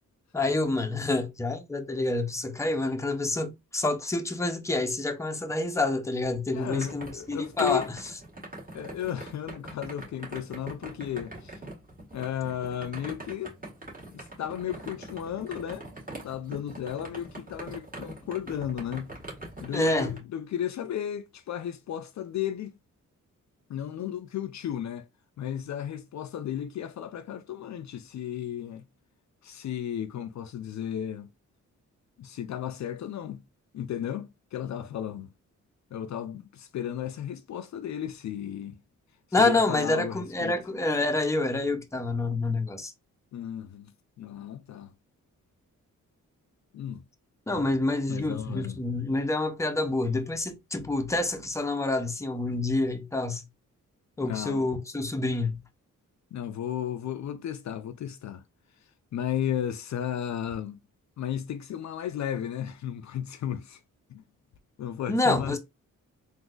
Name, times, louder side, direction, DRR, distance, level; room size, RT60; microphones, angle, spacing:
voice 1, 0.3-7.8 19.7-20.1 39.3-42.9 47.5-53.4 54.2-55.6 65.1-65.6, left 2 dB, 10° left, 0.6 m, -27 dB
sound 1, 6.2-20.2, right 2 dB, 25° right, 1.7 m, -43 dB
voice 2, 6.5-7.9 8.7-11.6 12.1-13.6 14.1-15.9 16.2-19.1 19.6-22.8 23.7-25.1 25.4-28.8 29.4-31.3 32.2-33.4 33.7-35.3 35.9-38.8 39.4-40.6 43.3-43.9 44.2-44.9 46.7-47.0 48.1-48.8 54.2-54.7 56.3-58.4 59.1-60.8 61.2-63.8 64.1-64.2 64.8-65.6, left 10 dB, 60° left, 0.4 m, -34 dB
3.8 x 2.6 x 2.4 m
cardioid pair, 100°, 31 cm